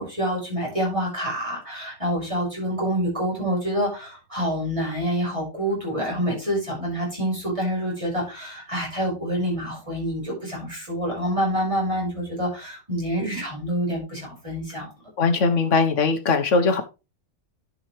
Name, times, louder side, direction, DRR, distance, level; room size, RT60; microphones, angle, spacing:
voice 1, 0.0-14.9, equal, 20° right, -3 dB, 5.8 m, -27 dB
voice 2, 15.2-16.8, left 4 dB, 60° left, 7 dB, 1.5 m, -20 dB
10.5 x 6.7 x 3.2 m, 0.29 s
omnidirectional pair, 1.5 m